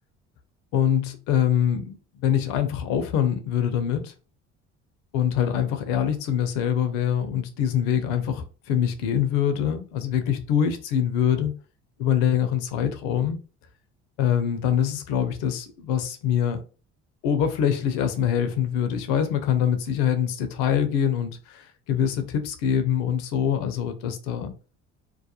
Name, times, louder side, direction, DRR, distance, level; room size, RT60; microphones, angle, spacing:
voice 1, 0.7-4.1 5.1-11.5 12.0-13.4 14.2-16.6 17.2-24.5, left 9 dB, 75° left, 0.6 m, -24 dB
2.4 x 2.1 x 2.8 m
hypercardioid pair, 60°, 33 cm